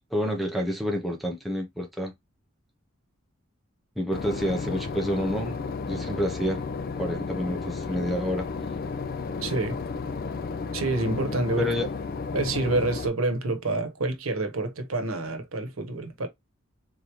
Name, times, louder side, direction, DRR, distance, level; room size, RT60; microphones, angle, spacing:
voice 1, 0.1-2.1 4.0-5.6 5.8-6.6 7.0-8.5 11.6-11.9, equal, ahead, 0.8 m, -28 dB
Boat Water vehicle / Engine, 4.1-13.1, left 4 dB, 45° left, 0.3 m, -33 dB
voice 2, 9.4-9.8 10.7-11.7 12.3-16.3, right 2 dB, 85° right, 1.0 m, -28 dB
3.8 x 3.3 x 2.9 m
head